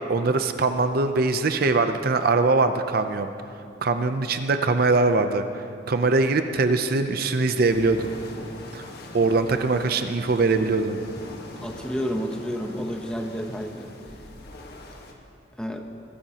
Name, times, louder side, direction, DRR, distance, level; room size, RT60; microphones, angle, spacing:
voice 1, 0.0-3.3 3.8-5.4 5.9-8.1 8.7-8.8 9.1-11.0, right 3 dB, 50° right, 8 dB, 0.5 m, -22 dB
sound 1, 7.7-15.1, left 1 dB, 50° left, 1.3 m, -42 dB
voice 2, 11.6-13.9 15.6-15.9, equal, 5° left, 3 dB, 0.8 m, -30 dB
22.0 x 13.5 x 2.9 m, 2.5 s
head